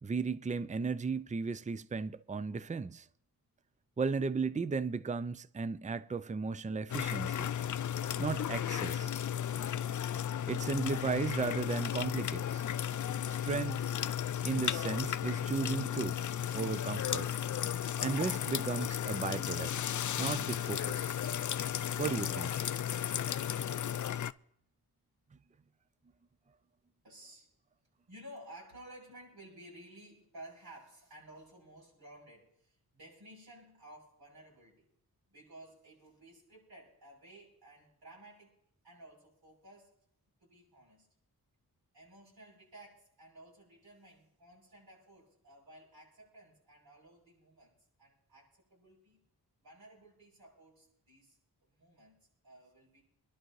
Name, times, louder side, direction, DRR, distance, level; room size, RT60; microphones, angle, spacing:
voice 1, 0.0-3.1 4.0-7.5 8.2-9.2 10.5-12.7 13.3-13.9 14.4-17.3 18.0-19.8 20.2-21.2 22.0-22.7, right 5 dB, 20° right, 0.5 m, -35 dB
sound 1, 6.9-24.3, left 9 dB, 55° left, 0.4 m, -34 dB
voice 2, 27.0-27.5 28.1-34.9 35.3-38.6 38.8-39.9 40.4-41.1 41.9-49.2 49.6-53.0, right 1 dB, 80° right, 8.0 m, -55 dB
26.0 x 11.5 x 3.2 m
wide cardioid pair, 70°, 37 cm